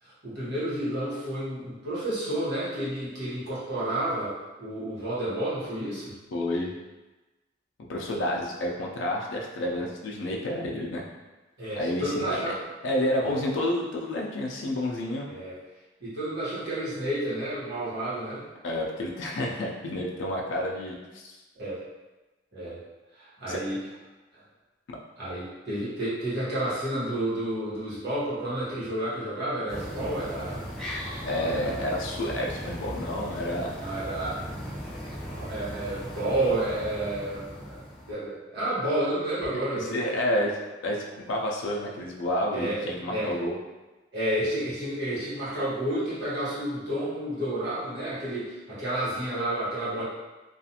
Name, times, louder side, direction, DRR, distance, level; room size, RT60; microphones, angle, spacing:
voice 1, 0.0-6.1 11.6-12.6 13.2-13.4 15.3-15.6 16.0-18.5 21.6-21.8 22.5-22.8 23.1-23.8 25.2-30.6 31.4-31.7 33.8-34.4 35.3-37.8 38.1-40.1 42.5-43.3 44.1-50.0, right 1 dB, 60° right, -10 dB, 1.2 m, -30 dB
voice 2, 6.3-6.7 7.9-11.0 11.7-12.5 12.8-15.3 18.6-21.4 23.5-23.6 24.9-25.0 31.2-33.8 39.7-43.6, left 1 dB, 80° left, -1 dB, 0.4 m, -30 dB
sound 1, 29.7-38.1, equal, 5° left, 0.5 m, -37 dB
2.4 x 2.3 x 2.7 m, 1.1 s
head